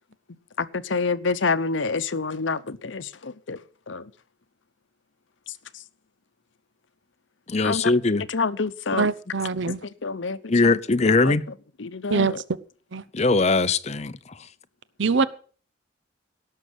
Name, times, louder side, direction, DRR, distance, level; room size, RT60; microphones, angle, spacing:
voice 1, 0.6-3.6 3.9-4.0 7.6-7.8 8.3-9.1 9.7-9.8 10.0-10.7 11.8-12.4, left 4 dB, 75° left, 0.8 m, -27 dB
voice 2, 7.5-8.3 10.5-11.4 13.1-14.5, left 3 dB, 35° left, 0.7 m, -21 dB
voice 3, 9.0-9.8 12.1-12.4 12.9-13.0 15.0-15.3, right 4 dB, 70° right, 0.7 m, -23 dB
17.5 x 6.6 x 7.9 m
head